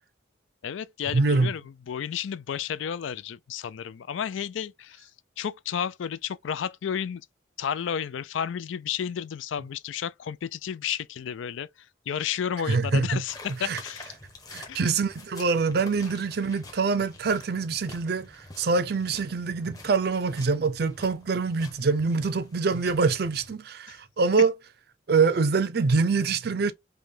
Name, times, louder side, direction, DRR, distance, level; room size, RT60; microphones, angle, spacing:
voice 1, 0.6-5.1 5.4-7.3 7.6-11.7 12.1-14.1 14.7-14.9 23.9-24.0, left 8 dB, 80° left, 0.4 m, -32 dB
voice 2, 1.1-1.5 12.7-13.2 13.6-13.8 14.5-24.5 25.1-26.7, right 4 dB, 55° right, 0.5 m, -25 dB
sound 1, 13.3-23.5, left 2 dB, 20° left, 0.9 m, -48 dB
5.3 x 2.2 x 3.2 m
head